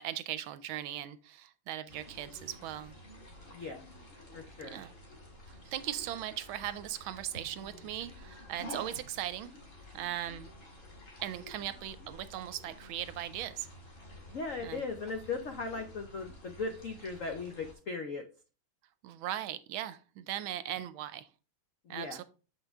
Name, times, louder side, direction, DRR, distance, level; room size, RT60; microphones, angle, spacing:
voice 1, 0.0-2.9 4.6-4.9 5.6-9.5 9.9-10.5 11.2-13.7 14.6-14.8 19.0-21.3 21.9-22.2, right 12 dB, 75° right, 13 dB, 1.3 m, -38 dB
sound 1, 1.9-17.7, left 1 dB, 40° left, 1.9 m, -51 dB
voice 2, 3.5-3.9 4.3-4.8 14.3-18.2 21.8-22.2, left 4 dB, 70° left, 5 dB, 0.7 m, -38 dB
6.9 x 5.7 x 3.4 m, 0.34 s
omnidirectional pair, 2.4 m